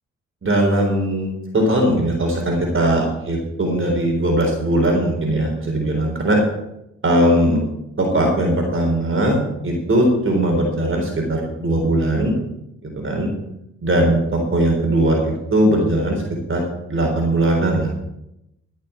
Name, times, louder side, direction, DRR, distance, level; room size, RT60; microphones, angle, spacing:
voice 1, 0.4-6.4 7.0-7.6 8.0-12.4 12.8-13.3 13.8-16.2 16.5-16.6 16.9-17.9, right 1 dB, 45° right, 1 dB, 3.8 m, -19 dB
14.0 x 6.8 x 7.0 m, 0.86 s
supercardioid pair, 50°, 30 cm